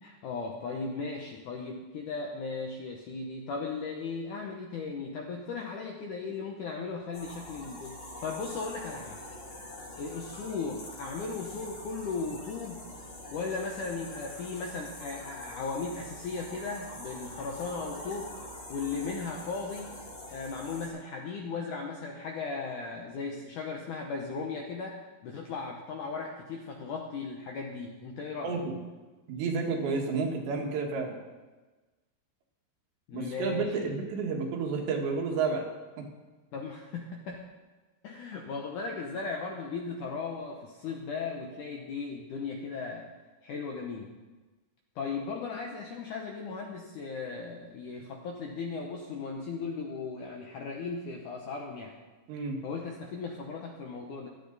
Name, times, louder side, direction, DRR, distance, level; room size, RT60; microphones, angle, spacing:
voice 1, 0.0-9.2 10.0-12.8 13.3-18.3 18.7-19.9 20.3-28.6 33.1-34.0 36.5-37.4 38.0-43.1 43.4-44.1 44.9-51.9 52.6-54.3, left 4 dB, 75° left, 1 dB, 1.8 m, -37 dB
sound 1, 7.1-20.9, left 1 dB, 45° left, 5.5 m, -44 dB
voice 2, 29.3-31.1 33.1-35.7 52.3-52.6, right 4 dB, 90° right, 0 dB, 4.1 m, -30 dB
15.5 x 12.5 x 4.0 m, 1.2 s
omnidirectional pair, 4.8 m